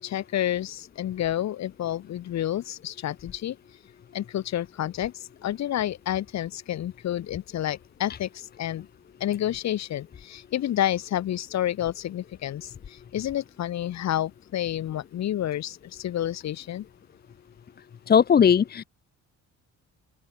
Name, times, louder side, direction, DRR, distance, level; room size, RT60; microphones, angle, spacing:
voice 1, 0.0-3.6 4.1-8.9 9.2-16.9, left 12 dB, 60° left, 7.3 m, -29 dB
voice 2, 18.1-18.8, left 7 dB, 30° left, 1.1 m, -18 dB
open air
cardioid pair, 150°, 30 cm